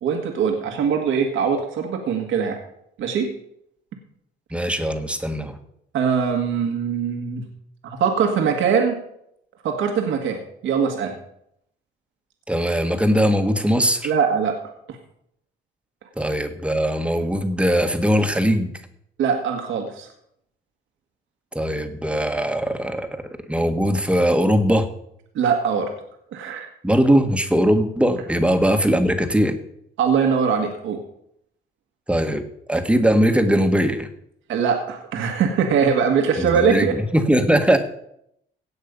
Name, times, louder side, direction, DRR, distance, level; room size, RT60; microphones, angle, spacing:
voice 1, 0.0-2.6 3.0-3.3 5.9-7.4 7.8-9.0 9.6-11.1 14.0-14.6 14.9-15.0 19.2-20.1 25.3-25.9 26.3-26.7 30.0-31.0 34.5-36.9, right 6 dB, 80° right, 3 dB, 1.7 m, -22 dB
voice 2, 4.5-5.6 12.5-14.1 16.2-18.7 21.5-23.1 23.5-24.9 26.8-29.6 32.1-32.4 32.7-34.1 36.4-37.8, equal, 5° right, 7 dB, 1.5 m, -20 dB
17.0 x 6.3 x 5.3 m, 0.74 s
cardioid pair, 90°, 20 cm